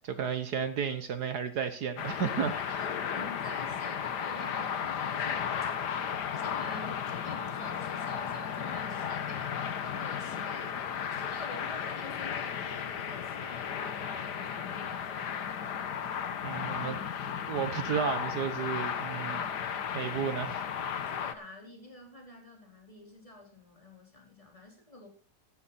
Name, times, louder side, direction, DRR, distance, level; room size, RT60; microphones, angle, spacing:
voice 1, 0.0-2.8 16.4-19.4 19.9-20.6, right 7 dB, 65° right, 1.6 m, -33 dB
sound 1, 2.0-21.3, left 8 dB, 65° left, 1.7 m, -34 dB
voice 2, 2.5-5.5 6.3-9.5 9.8-10.8 11.1-15.5 19.2-19.4 21.0-25.1, left 1 dB, 15° left, 4.6 m, -48 dB
15.0 x 12.0 x 4.3 m
omnidirectional pair, 1.9 m